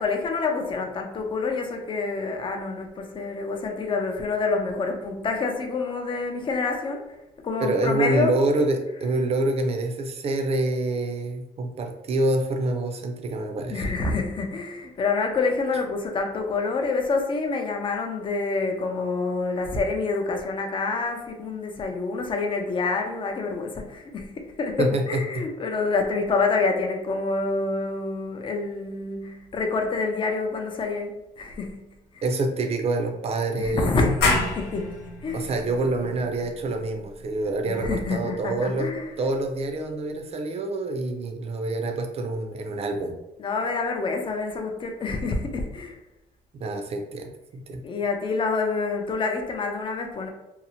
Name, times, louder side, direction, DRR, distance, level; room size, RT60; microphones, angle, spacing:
voice 1, 0.0-7.0 7.4-8.3 13.7-32.2 33.6-35.0 35.2-35.5 37.8-39.1 43.4-46.0 47.8-50.3, left 4 dB, 30° left, 4 dB, 0.4 m, -27 dB
voice 2, 7.6-13.9 24.8-25.2 32.2-34.0 35.3-38.9 39.2-43.1 46.6-47.3 47.7-47.8, right 2 dB, 35° right, 4 dB, 0.5 m, -26 dB
sound 1, 34.2-39.6, left 3 dB, 75° left, 0.7 m, -30 dB
2.8 x 2.0 x 2.7 m, 0.91 s
cardioid pair, 110°, 17 cm